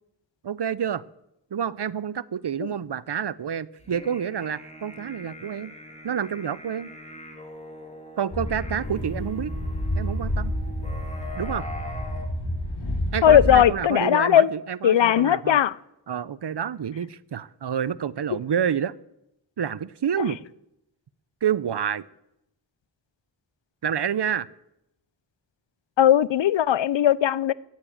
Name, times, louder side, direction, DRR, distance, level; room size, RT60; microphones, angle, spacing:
voice 1, 0.4-1.0 1.5-5.7 6.0-6.9 8.2-9.5 9.9-10.5 11.4-11.7 13.1-15.6 16.1-18.9 19.6-20.4 21.4-22.0 23.8-24.5, right 8 dB, 65° right, 0.7 m, -28 dB
sound 1, 3.8-12.3, equal, 15° left, 2.6 m, -42 dB
sound 2, 8.3-13.7, left 1 dB, 65° left, 4.8 m, -29 dB
voice 2, 13.2-14.5 14.8-15.8 20.2-20.3 26.0-27.5, left 10 dB, 85° left, 0.5 m, -18 dB
15.5 x 7.6 x 8.6 m
wide cardioid pair, 50°, 43 cm